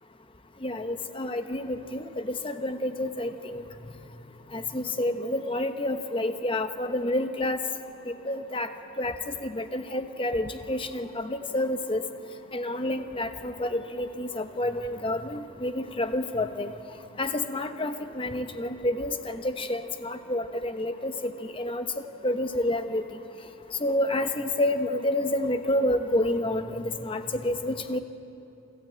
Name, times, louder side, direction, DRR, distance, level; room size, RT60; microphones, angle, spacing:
voice 1, 0.6-3.6 4.5-7.6 8.1-8.7 9.0-12.0 12.5-16.7 17.2-21.8 22.2-23.0 23.8-28.0, left 1 dB, 25° left, 8 dB, 0.9 m, -29 dB
27.0 x 12.5 x 8.7 m, 3.0 s
head